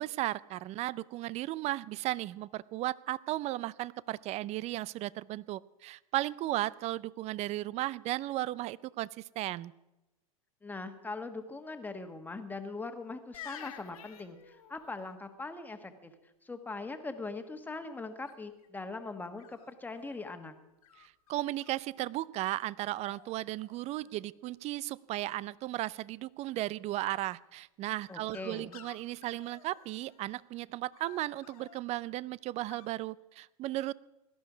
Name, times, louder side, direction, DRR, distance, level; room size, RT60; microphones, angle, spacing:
voice 1, 0.0-9.7 21.0-33.9, right 16 dB, 35° right, 21 dB, 0.5 m, -35 dB
voice 2, 10.6-16.1 16.4-20.5 28.1-28.8, left 3 dB, 10° left, 7 dB, 1.5 m, -41 dB
sound 1, 13.3-15.1 18.2-18.7 19.4-20.2 20.8-21.8 22.4-22.6 22.8-23.3 23.6-24.2 27.9-30.4 30.9-31.8 32.7-32.9, left 10 dB, 75° left, 2.0 m, -52 dB
17.5 x 12.5 x 5.1 m, 1.0 s
hypercardioid pair, 105°, 19 cm